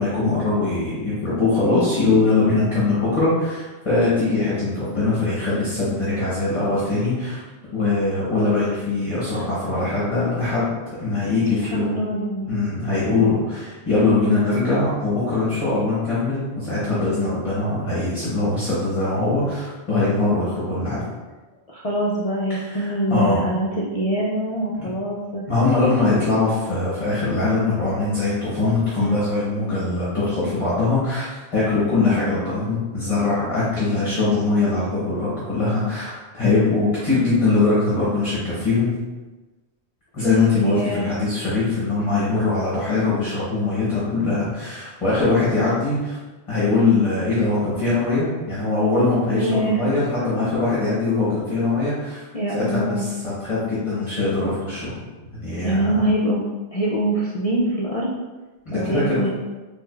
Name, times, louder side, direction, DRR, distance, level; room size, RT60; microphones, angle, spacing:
voice 1, 0.0-7.4 7.7-10.7 11.0-11.9 12.5-21.0 22.5-23.4 24.8-24.9 25.5-38.9 40.1-46.2 46.5-52.2 52.5-54.9 55.3-56.0 58.7-59.2, left 3 dB, 30° left, -9 dB, 1.0 m, -22 dB
voice 2, 11.7-12.5 21.7-25.4 28.9-29.3 40.6-41.1 49.4-49.8 52.3-53.0 55.6-56.4 56.7-58.1 58.7-59.3, right 1 dB, 50° left, -6 dB, 0.4 m, -24 dB
4.6 x 2.5 x 2.3 m, 1.2 s
omnidirectional pair, 1.1 m